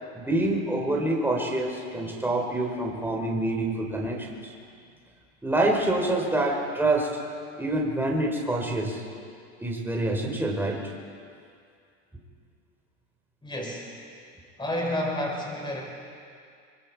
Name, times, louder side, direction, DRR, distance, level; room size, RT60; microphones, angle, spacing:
voice 1, 0.1-4.5 5.4-7.2 7.6-9.0 9.6-10.9, right 2 dB, 5° right, 0 dB, 3.6 m, -26 dB
voice 2, 13.4-13.9 14.6-15.8, left 1 dB, 10° left, -2 dB, 6.1 m, -30 dB
24.5 x 24.0 x 4.6 m, 2.3 s
hypercardioid pair, 105°, 41 cm